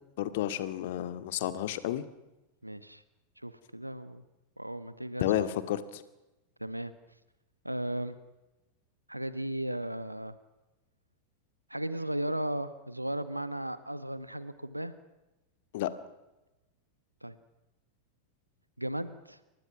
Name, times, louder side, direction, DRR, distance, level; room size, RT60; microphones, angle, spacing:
voice 1, 0.2-2.1 5.2-6.0 15.7-15.9, left 12 dB, 55° left, 11 dB, 2.2 m, -31 dB
voice 2, 2.6-3.0 3.4-4.2 4.6-5.5 6.6-6.9 7.6-8.2 9.1-10.3 11.7-14.9 17.2-17.3 18.8-19.4, right 1 dB, 85° right, 13 dB, 1.5 m, -36 dB
29.5 x 25.5 x 6.1 m, 1.0 s
figure-of-eight pair, 90°, 0 cm